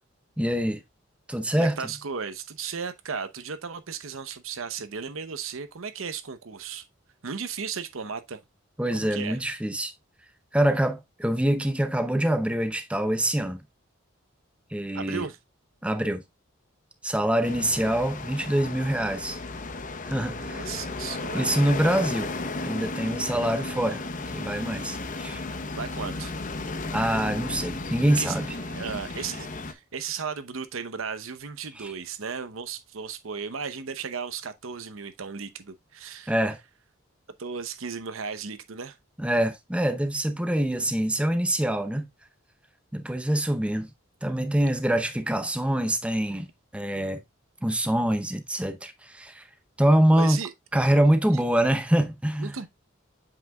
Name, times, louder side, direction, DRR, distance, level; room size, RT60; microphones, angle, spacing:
voice 1, 0.4-0.8 1.3-1.8 8.8-9.9 10.5-13.6 14.7-15.3 15.8-16.2 17.0-19.4 20.0-20.6 21.3-22.3 22.6-24.0 24.3-25.4 26.9-28.5 31.8-31.9 36.3-36.6 39.2-42.1 42.9-43.9 44.2-47.2 47.6-49.5 49.8-50.4 50.7-52.6, right 1 dB, 5° right, 0.7 m, -25 dB
voice 2, 1.6-6.8 7.2-8.4 8.9-9.4 14.9-15.4 20.3-21.7 25.5-26.3 28.2-36.3 37.4-39.0 50.1-50.5 51.3-51.4 52.4-52.7, right 6 dB, 80° right, 0.8 m, -35 dB
sound 1, 17.4-29.7, left 3 dB, 40° left, 0.8 m, -34 dB
7.7 x 5.9 x 2.2 m
head